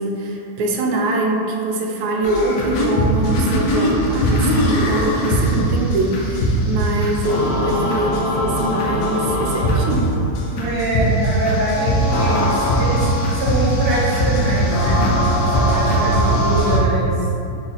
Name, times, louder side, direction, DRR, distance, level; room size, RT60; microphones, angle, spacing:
voice 1, 0.0-10.1, right 2 dB, 85° right, 0 dB, 1.5 m, -23 dB
sound 1, 2.2-16.8, equal, 75° left, 0.9 m, -20 dB
voice 2, 10.5-13.1 13.3-15.1 15.4-17.5, right 2 dB, 50° right, -8 dB, 0.8 m, -24 dB
Wind instrument woodwind instrument, 11.7-16.3, left 2 dB, 25° left, 0.5 m, -29 dB
3.9 x 2.4 x 3.9 m, 2.5 s
omnidirectional pair, 2.3 m